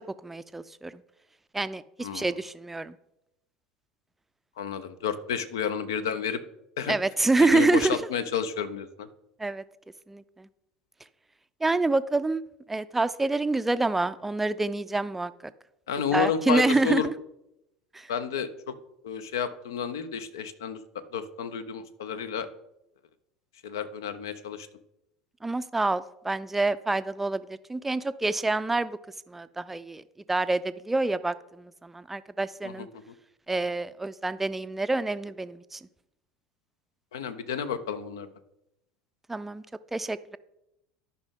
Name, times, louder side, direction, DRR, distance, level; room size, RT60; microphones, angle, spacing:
voice 1, 0.2-1.0 1.5-3.0 6.9-8.0 9.4-9.6 10.1-10.5 11.6-12.4 12.7-15.5 16.1-17.1 17.9-18.1 25.4-29.0 29.3-32.9 33.5-35.8 39.3-39.6 39.9-40.4, right 2 dB, 10° right, 14 dB, 0.4 m, -27 dB
voice 2, 4.6-6.4 6.8-7.0 7.4-9.1 15.9-17.1 18.1-18.7 19.0-20.8 21.1-22.5 23.6-24.7 32.6-32.9 37.1-38.3, left 7 dB, 65° left, 13 dB, 0.6 m, -31 dB
12.0 x 5.7 x 3.6 m, 0.85 s
figure-of-eight pair, 70°, 2 cm